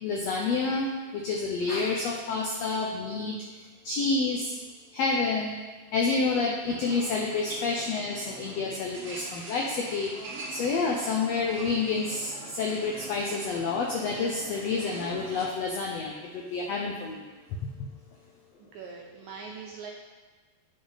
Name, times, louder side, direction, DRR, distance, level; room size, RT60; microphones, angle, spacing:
voice 1, 0.0-3.4 3.8-4.5 4.9-5.5 5.9-10.1 10.5-17.2, left 4 dB, 85° left, 0 dB, 1.4 m, -29 dB
sound 1, 6.6-15.5, right 3 dB, 60° right, 1.7 m, -43 dB
voice 2, 18.6-19.9, right 5 dB, 75° right, 0 dB, 1.7 m, -42 dB
9.8 x 5.3 x 4.0 m, 1.3 s
omnidirectional pair, 3.9 m